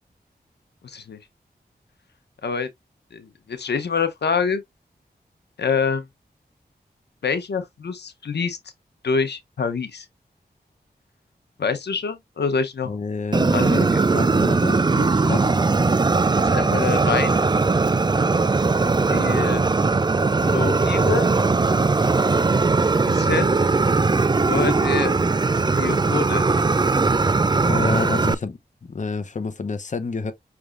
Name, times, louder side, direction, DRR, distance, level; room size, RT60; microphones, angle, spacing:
voice 1, 0.8-1.2 2.4-2.7 3.1-4.6 5.6-6.0 7.2-8.6 9.0-10.1 11.6-12.9 13.5-13.8 16.3-17.3 19.1-19.6 20.4-21.3 23.0-23.5 24.5-25.2 25.7-26.5, left 5 dB, 90° left, 0.8 m, -26 dB
voice 2, 12.9-15.5 27.6-30.3, left 4 dB, 45° left, 0.8 m, -29 dB
Fire, 13.3-28.3, right 3 dB, 25° right, 0.4 m, -19 dB
5.9 x 3.4 x 2.5 m
wide cardioid pair, 75°, 17 cm